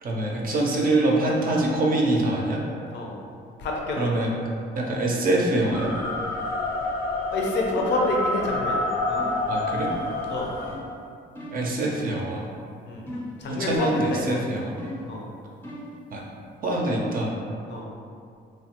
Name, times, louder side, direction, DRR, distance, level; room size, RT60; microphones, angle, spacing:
voice 1, 0.0-2.6 4.0-4.3 4.8-5.9 9.5-9.9 11.5-12.4 13.5-14.7 16.1-16.2 16.6-17.3, right 2 dB, 45° right, -2 dB, 0.5 m, -24 dB
voice 2, 3.6-4.3 7.3-8.8 9.1-9.2 10.3-10.5 12.9-13.0 13.4-14.4 15.1-15.3 17.7-17.9, left 2 dB, 65° left, -1 dB, 0.6 m, -27 dB
sound 1, 5.7-10.8, left 2 dB, 85° left, 0.9 m, -28 dB
sound 2, 9.2-9.5 9.9-10.2 10.6-10.9 11.3-11.7 13.1-13.4 14.0-14.3 14.8-15.1 15.6-16.0, left 1 dB, 10° left, 0.5 m, -37 dB
3.1 x 2.1 x 2.9 m, 2.4 s
cardioid pair, 90°, 20 cm